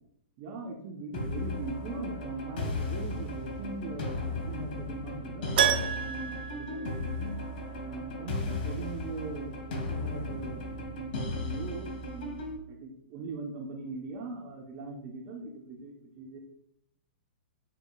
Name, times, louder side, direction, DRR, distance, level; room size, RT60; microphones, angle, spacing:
voice 1, 0.4-7.4 7.8-10.6 10.9-16.4, right 3 dB, 40° right, 0 dB, 1.3 m, -41 dB
sound 1, 1.1-12.6, left 2 dB, 60° left, 2.1 m, -36 dB
Keyboard (musical), 5.6-7.6 7.9-8.0 10.7-10.8 11.0-11.1, right 9 dB, 60° right, 0.9 m, -30 dB
8.9 x 6.9 x 2.6 m, 0.74 s
hypercardioid pair, 120°, 6 cm